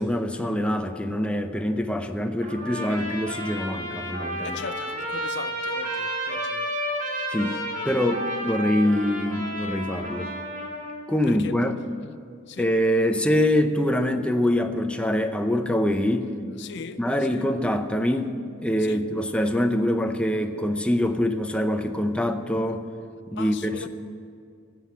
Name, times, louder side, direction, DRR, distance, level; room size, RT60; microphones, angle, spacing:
voice 1, 0.0-4.6 7.3-7.6 7.9-10.3 11.1-11.8 12.6-16.3 17.0-22.9 23.3-23.9, left 1 dB, 5° left, 0.6 m, -24 dB
Trumpet, 2.4-11.0, equal, 40° right, 2.7 m, -31 dB
voice 2, 4.4-6.7 7.8-8.0 11.3-11.7 12.5-12.7 16.6-17.0 17.3-17.5 18.8-19.1 23.3-23.9, left 5 dB, 55° left, 0.5 m, -38 dB
15.0 x 7.8 x 10.0 m
head